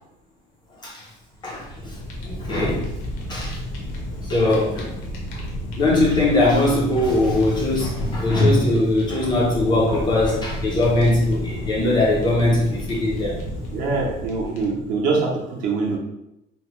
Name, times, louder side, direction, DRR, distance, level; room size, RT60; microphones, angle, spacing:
Fire, 1.4-15.0, equal, 65° left, 0.7 m, -31 dB
voice 1, 1.4-2.9 3.3-3.6 4.2-5.0 5.3-5.4 5.7-13.4, left 2 dB, 20° left, -4 dB, 0.4 m, -21 dB
voice 2, 13.7-16.0, right 4 dB, 40° right, -3 dB, 0.7 m, -24 dB
2.9 x 2.0 x 2.9 m, 0.85 s
cardioid pair, 180°, 20 cm